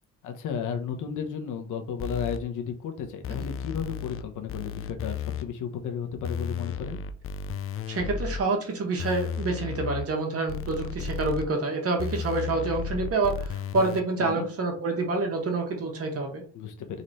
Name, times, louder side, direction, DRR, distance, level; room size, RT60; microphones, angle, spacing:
voice 1, 0.2-7.0 14.2-14.5 16.5-17.0, left 7 dB, 80° left, 5 dB, 1.1 m, -34 dB
sound 1, 2.0-2.4 3.2-4.2 4.5-5.4 6.2-8.4 9.0-10.1 10.5-11.4 12.0-14.0, left 6 dB, 45° left, 0.6 m, -33 dB
voice 2, 7.9-16.4, right 3 dB, 50° right, 2 dB, 1.7 m, -27 dB
4.0 x 3.2 x 4.2 m, 0.40 s
cardioid pair, 90°, 30 cm